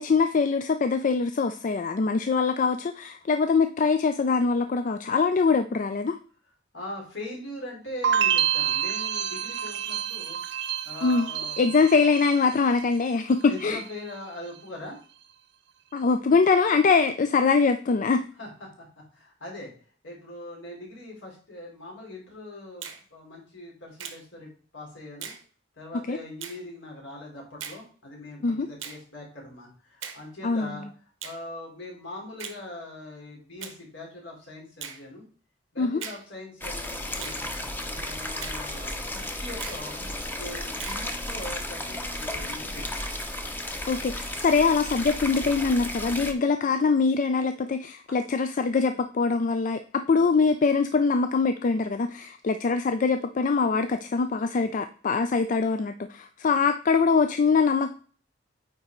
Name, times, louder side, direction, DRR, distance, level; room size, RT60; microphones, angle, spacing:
voice 1, 0.0-6.2 11.0-11.3 11.6-13.8 15.9-18.2 26.1-26.2 28.4-28.7 30.4-30.8 35.8-36.0 43.9-57.9, left 4 dB, 40° left, 9 dB, 0.4 m, -23 dB
voice 2, 6.7-10.4 10.8-11.6 13.5-15.0 18.4-18.5 18.8-18.9 19.1-19.7 20.0-25.3 25.7-30.9 31.2-35.2 35.7-37.4 37.9-40.0 40.3-43.0 48.1-48.2, left 2 dB, 70° left, -2 dB, 3.5 m, -41 dB
sound 1, 8.0-13.1 13.4-14.0, right 9 dB, 65° right, 0.5 m, -28 dB
Finger snapping, 22.8-23.0 24.0-24.2 25.2-25.4 26.4-26.6 27.6-27.8 28.8-29.0 30.0-30.2 31.2-31.4 32.4-32.6 33.6-33.8 34.8-35.0 36.0-36.2 37.2-37.4 38.4-38.6 39.6-39.8 40.8-41.0, right 8 dB, 90° right, 1.0 m, -39 dB
sound 2, 36.6-46.3, left 1 dB, 10° left, 0.8 m, -34 dB
9.1 x 4.2 x 3.8 m, 0.42 s
head